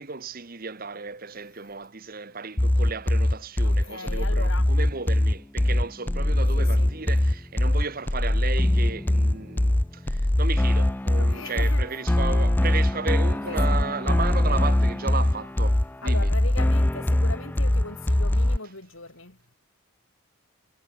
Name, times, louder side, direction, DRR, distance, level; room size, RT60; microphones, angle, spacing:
voice 1, 0.0-16.3, right 4 dB, 45° right, 1.2 m, -34 dB
sound 1, 2.6-18.6, left 1 dB, 10° left, 0.3 m, -22 dB
voice 2, 3.6-4.7 6.5-6.9 9.4-9.7 11.1-11.8 13.5-13.8 16.0-19.4, left 3 dB, 70° left, 7.0 m, -39 dB
head